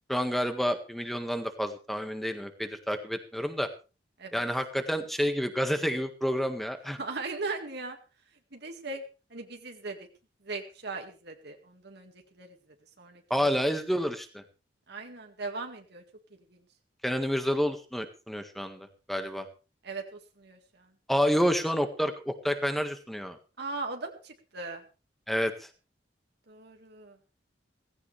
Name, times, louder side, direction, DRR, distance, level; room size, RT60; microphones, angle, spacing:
voice 1, 0.1-3.7 4.3-7.0 13.3-14.4 17.0-19.5 21.1-23.4 25.3-25.7, equal, ahead, 7 dB, 1.7 m, -29 dB
voice 2, 7.0-8.0 8.5-9.0 9.3-10.0 10.4-12.6 13.0-13.8 14.9-16.0 16.5-16.6 19.8-20.9 23.6-24.8 26.5-27.2, right 3 dB, 60° right, 3 dB, 2.1 m, -39 dB
17.0 x 16.0 x 3.4 m, 0.33 s
head